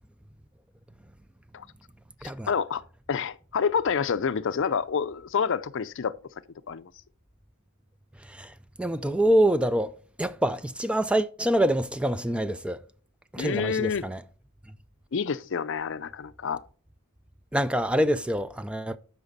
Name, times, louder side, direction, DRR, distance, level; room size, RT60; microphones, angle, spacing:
voice 1, 2.2-2.8 3.1-6.1 6.7-6.9 13.4-14.0 15.1-16.6, left 6 dB, 60° left, 0.5 m, -28 dB
voice 2, 8.2-8.5 8.8-9.9 10.2-12.8 13.3-14.2 17.5-19.0, right 1 dB, 5° right, 0.3 m, -25 dB
13.0 x 5.9 x 4.1 m
head